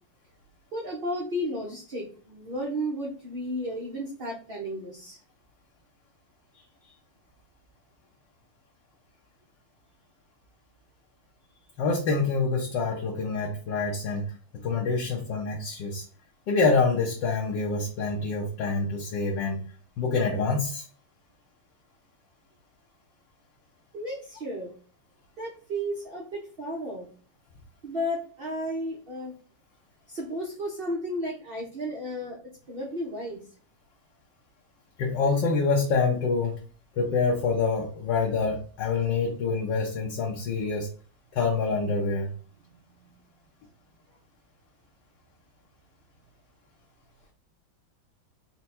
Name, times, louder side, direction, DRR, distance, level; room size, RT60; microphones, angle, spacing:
voice 1, 0.7-5.2 6.5-6.9 23.9-24.7 25.4-27.1 27.8-29.3 30.1-32.4 32.7-33.4 43.0-43.1, equal, 50° right, -3 dB, 0.6 m, -33 dB
voice 2, 11.8-14.4 14.6-16.0 16.5-19.6 20.0-20.9 35.0-36.6 36.9-40.9 41.3-42.3, left 4 dB, 70° left, -1 dB, 1.4 m, -26 dB
4.3 x 2.3 x 4.2 m, 0.41 s
omnidirectional pair, 2.1 m